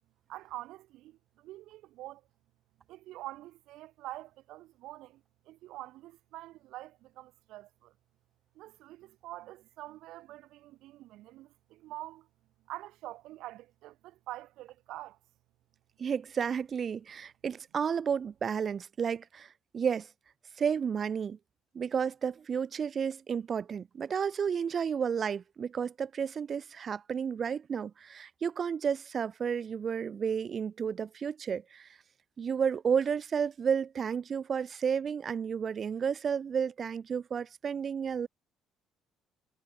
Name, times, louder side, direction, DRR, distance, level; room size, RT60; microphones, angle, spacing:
voice 1, 0.3-2.2 2.9-7.9 8.5-12.3 12.7-15.2, right 16 dB, 80° right, 2.4 m, -46 dB
voice 2, 16.0-19.5 19.7-20.1 20.6-21.4 21.7-31.9 32.4-38.3, right 7 dB, 35° right, 0.5 m, -32 dB
cardioid pair, 135°, 0 cm